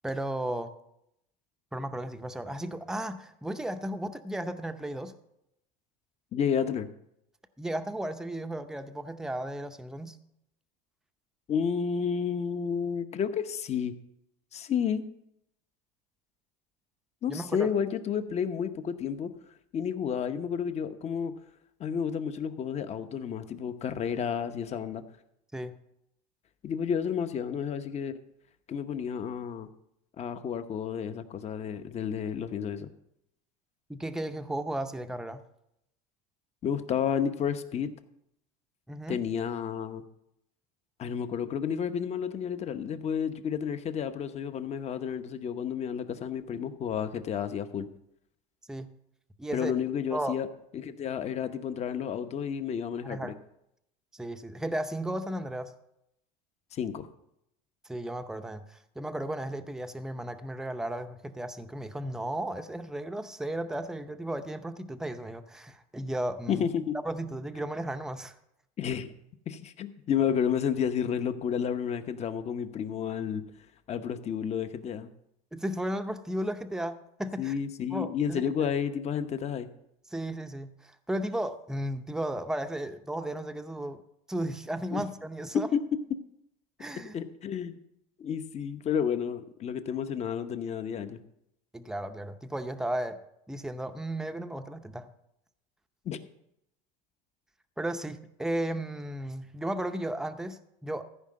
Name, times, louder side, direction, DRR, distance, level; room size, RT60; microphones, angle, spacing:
voice 1, 0.0-0.7 1.7-5.1 7.6-10.2 17.3-17.7 25.5-25.7 33.9-35.4 38.9-39.2 48.7-48.9 49.4-49.7 50.1-50.4 53.0-53.3 54.1-55.7 57.8-66.7 67.0-68.3 75.5-77.6 77.9-78.4 80.1-84.0 84.3-85.7 86.8-87.2 91.7-93.2 93.5-95.1 97.8-101.0, right 1 dB, 5° right, 7 dB, 0.7 m, -34 dB
voice 2, 6.3-6.9 11.5-13.9 14.5-15.0 17.2-19.3 19.7-21.3 21.8-25.0 26.6-28.1 28.7-29.7 30.2-32.9 36.6-37.9 39.1-40.0 41.0-47.9 49.5-50.5 50.7-53.4 56.7-57.1 66.5-67.0 68.8-69.1 69.5-73.4 73.9-75.1 77.4-79.7 84.9-85.0 85.7-85.8 87.1-87.8 88.2-91.2 96.0-96.2, left 7 dB, 35° left, 10 dB, 0.9 m, -31 dB
14.5 x 5.1 x 7.6 m, 0.79 s
supercardioid pair, 125°, 20 cm